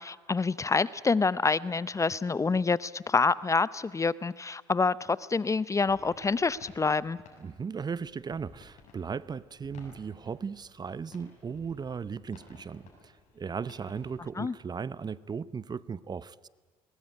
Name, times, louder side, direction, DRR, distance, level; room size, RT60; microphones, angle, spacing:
voice 1, 0.0-7.2 14.4-14.5, left 4 dB, 25° left, 19 dB, 0.6 m, -27 dB
sound 1, 5.9-14.1, left 4 dB, 60° left, 7.1 m, -56 dB
voice 2, 7.4-16.5, right 6 dB, 30° right, 19 dB, 0.7 m, -37 dB
21.0 x 20.5 x 9.6 m, 1.4 s
supercardioid pair, 70°, 13 cm